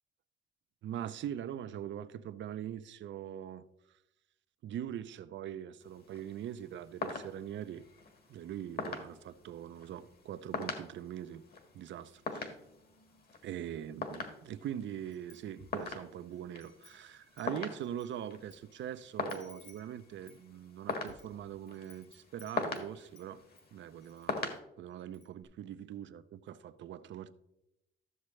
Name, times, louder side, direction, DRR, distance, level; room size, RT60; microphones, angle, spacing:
voice 1, 0.8-3.7 4.6-7.8 8.3-11.4 11.7-12.5 13.4-23.4 23.7-27.3, right 10 dB, 70° right, 0.6 m, -42 dB
sound 1, 5.8-24.6, left 4 dB, 50° left, 1.7 m, -43 dB
Wind chime, 15.1-15.9 16.3-18.6 18.9-19.0 19.3-23.3 23.6-24.3 24.6-24.7 25.0-25.4, left 4 dB, 70° left, 2.6 m, -61 dB
13.5 x 7.3 x 3.2 m
cardioid pair, 90°, 20 cm